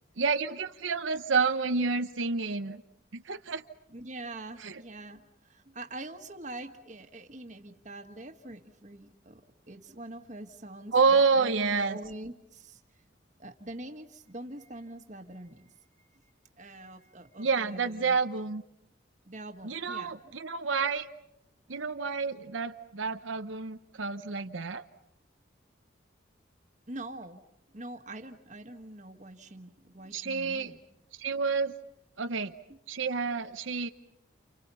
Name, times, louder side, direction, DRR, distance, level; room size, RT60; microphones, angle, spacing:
voice 1, 0.2-2.8 3.1-3.6 4.6-4.8 10.9-12.0 17.4-18.6 19.6-21.1 21.7-24.8 30.1-30.7 31.2-31.7 32.2-32.5 32.9-33.9, right 4 dB, 90° right, 8 dB, 0.9 m, -29 dB
voice 2, 3.9-9.4 9.7-12.8 13.4-15.7 16.6-18.2 19.2-20.3 26.9-27.4 27.7-30.8 32.7-32.8, right 2 dB, 40° right, 6 dB, 1.7 m, -44 dB
29.5 x 29.5 x 5.6 m, 0.81 s
head